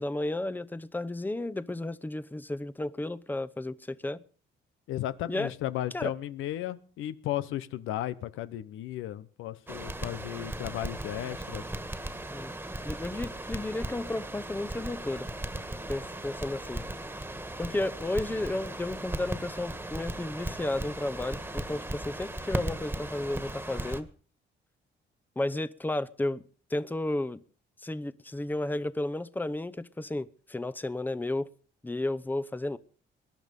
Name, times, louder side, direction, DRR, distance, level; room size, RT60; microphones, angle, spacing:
voice 1, 0.0-4.2 5.3-5.5 5.9-6.1 12.3-12.5 12.8-15.3 15.9-16.8 17.6-24.1 25.4-26.4 26.7-27.4 27.8-31.5 31.8-32.8, left 2 dB, 10° left, 0.8 m, -33 dB
voice 2, 4.9-11.6, left 13 dB, 90° left, 0.9 m, -35 dB
Crackle, 9.7-24.0, right 1 dB, 10° right, 1.7 m, -37 dB
21.5 x 11.0 x 5.3 m
cardioid pair, 90°, 20 cm